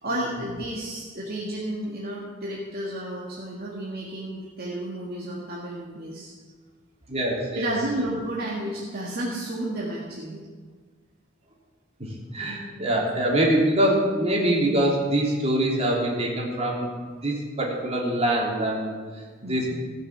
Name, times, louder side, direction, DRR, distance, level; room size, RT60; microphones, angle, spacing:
voice 1, 0.0-6.3 7.6-10.4 19.4-19.8, right 1 dB, 50° right, -4 dB, 1.8 m, -32 dB
voice 2, 7.1-7.7 12.0-16.9 17.2-18.9 19.4-19.7, right 1 dB, 35° right, -3 dB, 3.2 m, -24 dB
16.5 x 6.5 x 7.2 m, 1.5 s
head